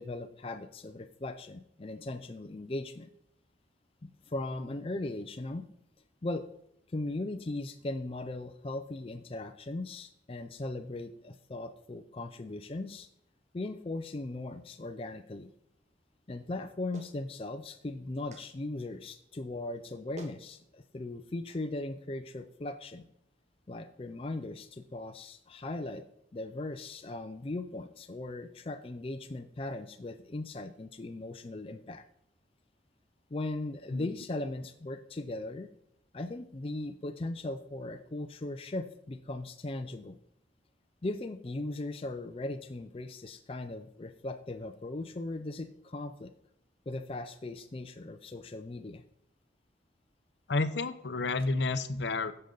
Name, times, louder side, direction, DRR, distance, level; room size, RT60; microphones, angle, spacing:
voice 1, 0.0-3.1 4.0-5.7 6.2-6.5 6.9-13.1 13.5-15.5 16.3-23.1 23.7-26.0 26.3-32.0 33.3-35.7 36.1-40.2 41.0-46.3 46.9-49.0, left 2 dB, 30° left, 8 dB, 0.4 m, -38 dB
Clapping, 16.9-17.2 18.3-18.5 19.7-19.8 20.2-20.4 21.5-21.6, right 2 dB, 35° right, 0.9 m, -48 dB
voice 2, 50.5-52.3, left 3 dB, 70° left, 12 dB, 0.6 m, -30 dB
10.5 x 6.7 x 3.9 m, 0.77 s
head